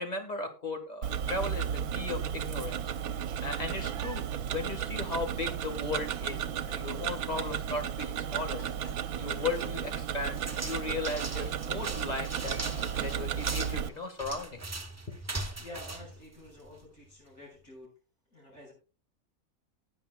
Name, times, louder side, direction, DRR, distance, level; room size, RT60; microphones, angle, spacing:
voice 1, 0.0-2.9 3.4-4.2 4.5-8.6 9.2-14.6 15.1-15.2, left 3 dB, 30° left, 5 dB, 1.6 m, -36 dB
Tick-tock, 1.0-13.9, right 9 dB, 75° right, 1.2 m, -34 dB
Dishes pots and pans, 7.3-9.7 10.0-10.2 11.0-11.1 11.5-11.6 11.8-14.0 14.5-14.6, left 1 dB, 85° left, 3.8 m, -55 dB
sound 1, 10.3-16.9, right 2 dB, 20° right, 0.4 m, -40 dB
voice 2, 15.2-17.9 18.3-18.7, left 1 dB, 65° left, -2 dB, 7.2 m, -49 dB
18.5 x 9.0 x 2.3 m, 0.33 s
omnidirectional pair, 1.6 m